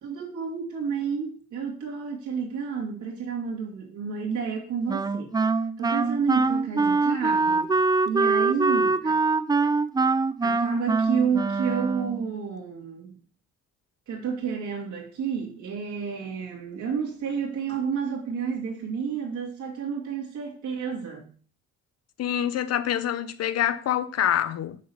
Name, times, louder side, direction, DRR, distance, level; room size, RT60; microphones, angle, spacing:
voice 1, 0.0-5.3 5.8-7.7 8.0-9.2 10.4-13.2 14.1-21.3, right 6 dB, 75° right, 2.3 m, -30 dB
Wind instrument woodwind instrument, 4.9-12.3, right 4 dB, 15° right, 0.3 m, -24 dB
voice 2, 22.2-24.8, left 10 dB, 55° left, 0.7 m, -26 dB
6.4 x 4.0 x 5.6 m
cardioid pair, 90°, 30 cm